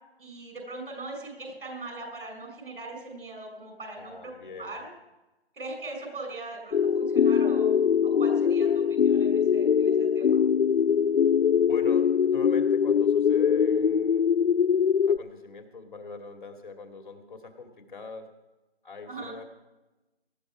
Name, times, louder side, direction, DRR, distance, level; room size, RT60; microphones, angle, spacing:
voice 1, 0.2-4.9 5.5-10.4 19.1-19.4, right 2 dB, 60° right, 3 dB, 6.0 m, -40 dB
voice 2, 4.0-4.8 11.6-14.3 15.0-18.2 18.8-19.4, left 4 dB, 50° left, 5 dB, 2.5 m, -41 dB
sound 1, 6.7-15.2, left 7 dB, 70° left, 0.5 m, -22 dB
19.0 x 13.5 x 4.9 m, 1.0 s
figure-of-eight pair, 160°, 32 cm